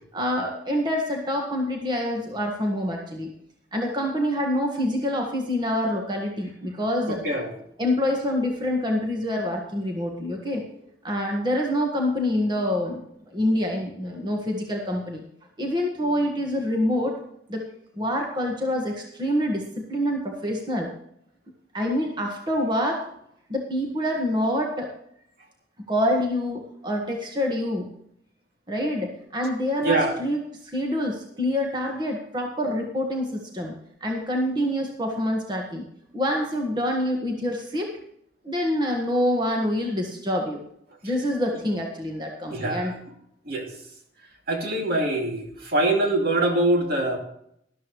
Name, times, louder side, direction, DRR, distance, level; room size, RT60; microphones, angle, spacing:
voice 1, 0.1-3.3 3.7-7.2 7.8-10.7 11.0-13.1 13.3-15.2 15.6-17.2 17.5-17.6 17.9-20.9 21.7-23.1 23.5-24.9 25.9-27.9 28.7-33.7 34.0-35.9 36.1-37.9 38.4-40.6 41.0-42.9, left 1 dB, 25° right, 1 dB, 1.7 m, -26 dB
voice 2, 7.1-7.5 29.8-30.2 42.5-42.9 43.5-43.7 44.5-47.2, right 1 dB, 55° right, 1 dB, 2.7 m, -24 dB
13.0 x 12.5 x 3.2 m, 0.72 s
head